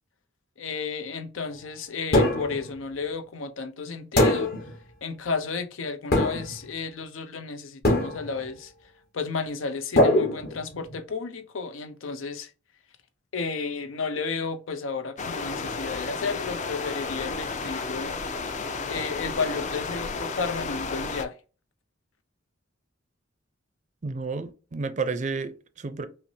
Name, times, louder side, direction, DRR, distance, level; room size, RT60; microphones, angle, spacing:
voice 1, 0.6-4.5 5.0-8.7 9.1-12.5 13.3-18.2 18.9-21.4, left 4 dB, 90° left, 0.6 m, -32 dB
sound 1, 2.1-2.7 4.2-4.7 6.1-6.6 7.8-8.4 10.0-10.9, left 1 dB, 55° left, 1.2 m, -22 dB
sound 2, 15.2-21.2, left 4 dB, 40° left, 0.4 m, -32 dB
voice 2, 24.0-26.1, right 4 dB, 40° right, 0.4 m, -31 dB
5.6 x 2.0 x 2.7 m
head